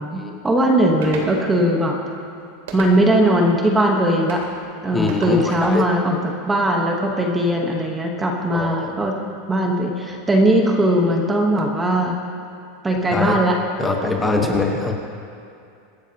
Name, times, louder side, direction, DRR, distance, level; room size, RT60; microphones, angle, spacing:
voice 1, 0.0-2.0 2.7-4.4 4.8-6.2 6.5-9.1 9.5-12.2 12.8-13.6 14.4-14.6, right 1 dB, 10° right, 1 dB, 1.2 m, -19 dB
sound 1, 1.0-1.3 2.7-3.2 4.3-4.5 5.1-5.8, right 4 dB, 90° right, 2.8 m, -35 dB
voice 2, 4.9-5.9 8.5-8.9 13.1-13.4 13.8-14.9, left 3 dB, 10° left, 1 dB, 1.2 m, -23 dB
25.0 x 13.0 x 3.0 m, 2.5 s
supercardioid pair, 160°, 0 cm